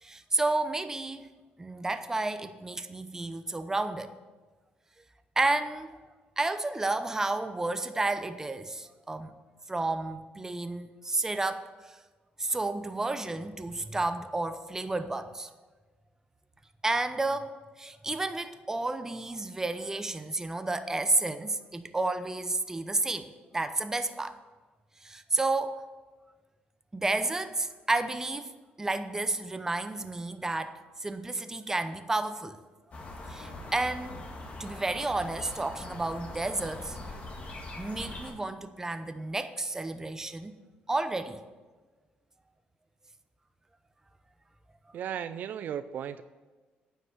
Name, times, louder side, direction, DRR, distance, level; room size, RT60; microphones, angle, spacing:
voice 1, 0.0-1.3 1.6-4.1 5.4-5.9 6.4-9.4 9.7-11.7 12.4-15.5 16.8-24.3 25.0-25.8 26.9-28.5 28.8-32.6 33.3-34.2 34.6-37.0 37.8-40.5 40.9-41.4, right 2 dB, 15° right, 10 dB, 0.7 m, -31 dB
sound 1, 32.9-38.3, left 2 dB, 40° left, 2.0 m, -42 dB
voice 2, 44.9-46.2, right 9 dB, 60° right, 12 dB, 0.4 m, -35 dB
9.5 x 5.9 x 7.7 m, 1.3 s
cardioid pair, 100°, 3 cm